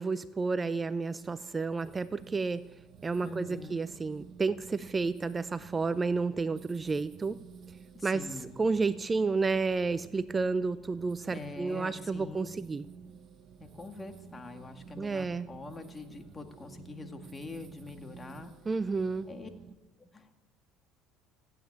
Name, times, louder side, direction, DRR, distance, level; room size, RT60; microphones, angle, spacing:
voice 1, 0.0-2.6 3.0-7.4 8.0-12.9 15.0-15.5 18.7-19.3, right 4 dB, 25° right, 14 dB, 0.5 m, -31 dB
sound 1, 0.6-19.8, right 6 dB, 50° right, 1.1 m, -52 dB
voice 2, 3.2-3.8 7.9-8.5 11.3-12.5 13.6-18.5 19.3-19.5 20.0-20.3, left 3 dB, 25° left, 6 dB, 2.0 m, -44 dB
15.5 x 9.3 x 8.8 m, 1.1 s
supercardioid pair, 80°, 0 cm